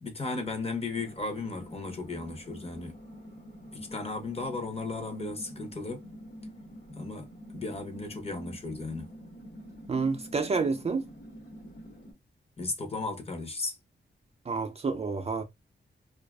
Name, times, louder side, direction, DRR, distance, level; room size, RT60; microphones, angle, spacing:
voice 1, 0.0-3.0 3.7-6.0 6.9-9.1 12.6-13.8, left 3 dB, 35° left, 0.7 m, -35 dB
sound 1, 0.9-12.1, equal, 70° left, 1.2 m, -47 dB
voice 2, 9.9-11.1 14.5-15.4, right 4 dB, 35° right, 0.4 m, -29 dB
2.6 x 2.3 x 2.3 m
wide cardioid pair, 110°, 19 cm